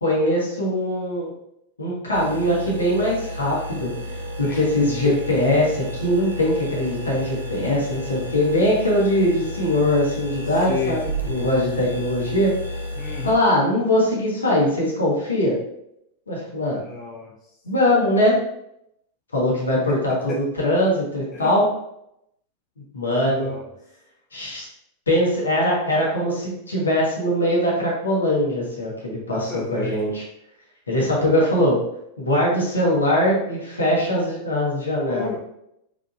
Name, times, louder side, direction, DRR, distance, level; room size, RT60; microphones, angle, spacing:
voice 1, 0.0-1.3 1.8-3.9 4.5-12.5 13.2-15.6 16.3-16.8 17.6-18.4 19.3-21.6 22.9-23.5 24.3-24.7 25.1-30.2 30.9-31.8 32.2-35.4, left 1 dB, 75° left, -4 dB, 1.3 m, -21 dB
sound 1, 2.1-13.3, equal, 80° right, 0.7 m, -32 dB
voice 2, 10.5-11.0 13.0-13.4 16.7-17.4 19.9-20.4 21.3-21.5 23.3-23.7 29.3-30.0 35.0-35.4, left 5 dB, 30° left, 0 dB, 0.4 m, -32 dB
3.8 x 3.6 x 2.6 m, 0.81 s
figure-of-eight pair, 90°, 0 cm